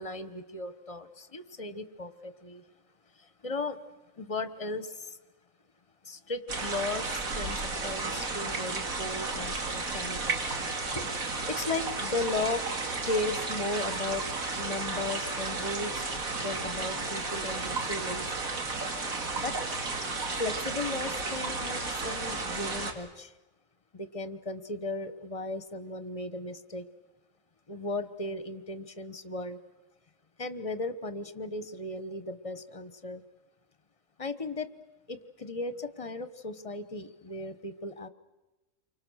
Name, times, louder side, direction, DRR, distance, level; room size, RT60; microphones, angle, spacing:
voice 1, 0.0-2.6 3.2-3.8 4.2-5.2 6.0-10.4 10.9-12.6 13.0-14.3 14.5-16.1 16.3-18.4 19.3-19.5 20.4-23.3 23.9-26.9 27.7-29.6 30.4-33.2 34.2-34.7 35.1-38.1, left 2 dB, 25° left, 11 dB, 1.1 m, -36 dB
sound 1, 6.5-22.9, right 3 dB, 90° right, 2.6 m, -33 dB
29.0 x 24.5 x 6.4 m, 1.1 s
omnidirectional pair, 1.4 m